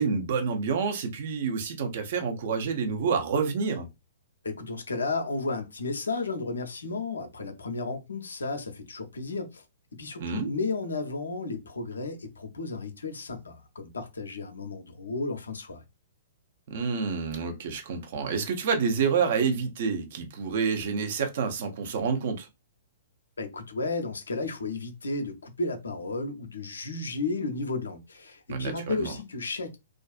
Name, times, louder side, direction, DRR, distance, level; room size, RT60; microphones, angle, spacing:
voice 1, 0.0-3.9 10.2-10.5 16.7-22.5 28.5-29.1, right 5 dB, 50° right, 0.6 m, -28 dB
voice 2, 4.4-9.6 10.0-15.8 23.4-29.8, left 3 dB, 75° left, 0.5 m, -33 dB
2.4 x 2.3 x 2.3 m
figure-of-eight pair, 115°, 0 cm